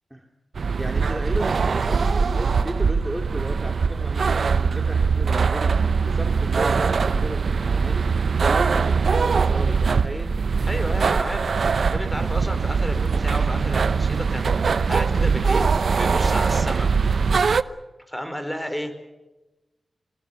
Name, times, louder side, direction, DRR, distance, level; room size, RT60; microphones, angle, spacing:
sound 1, 0.5-17.6, right 5 dB, 75° right, 0.8 m, -22 dB
voice 1, 0.8-10.3, right 1 dB, 10° right, 3 dB, 2.6 m, -34 dB
voice 2, 10.7-16.9 18.1-18.9, equal, 10° left, 8 dB, 4.6 m, -32 dB
26.0 x 19.5 x 6.8 m, 1.1 s
wide cardioid pair, 70°, 0 cm